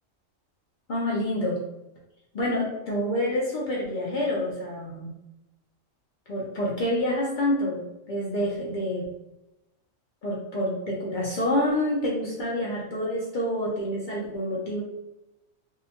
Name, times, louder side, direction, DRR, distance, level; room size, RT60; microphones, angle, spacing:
voice 1, 0.9-1.6 2.3-5.1 6.3-9.0 10.2-14.8, left 1 dB, 65° left, -5 dB, 0.5 m, -27 dB
2.7 x 2.1 x 2.7 m, 0.95 s
omnidirectional pair, 1.4 m